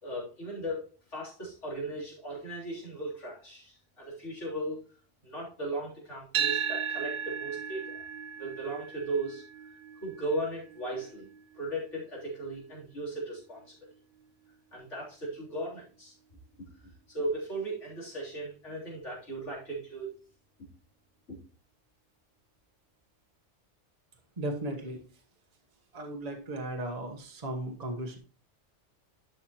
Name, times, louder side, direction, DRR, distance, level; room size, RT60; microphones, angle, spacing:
voice 1, 0.0-4.8 5.2-7.9 8.4-9.4 10.0-11.3 11.6-13.8 14.7-16.1 17.1-20.1 21.3-21.4, right 1 dB, 85° left, -5 dB, 3.8 m, -37 dB
sound 1, 6.3-14.5, right 7 dB, 55° right, 0.7 m, -37 dB
voice 2, 24.4-25.0 25.9-28.2, right 1 dB, 35° right, 2 dB, 1.3 m, -36 dB
11.5 x 5.9 x 3.0 m, 0.36 s
omnidirectional pair, 1.2 m